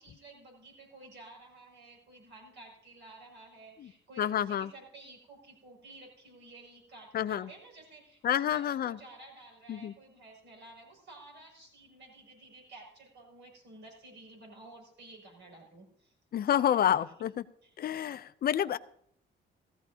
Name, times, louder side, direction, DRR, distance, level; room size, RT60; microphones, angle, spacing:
voice 1, 0.0-16.1 16.5-17.1 17.6-17.7, right 2 dB, 65° right, -1 dB, 6.3 m, -53 dB
voice 2, 4.2-4.7 7.1-7.5 8.2-9.0 9.7-9.9 16.3-17.3 17.8-18.8, left 10 dB, 50° left, 12 dB, 0.5 m, -28 dB
17.5 x 14.5 x 2.8 m, 0.65 s
cardioid pair, 90°, 20 cm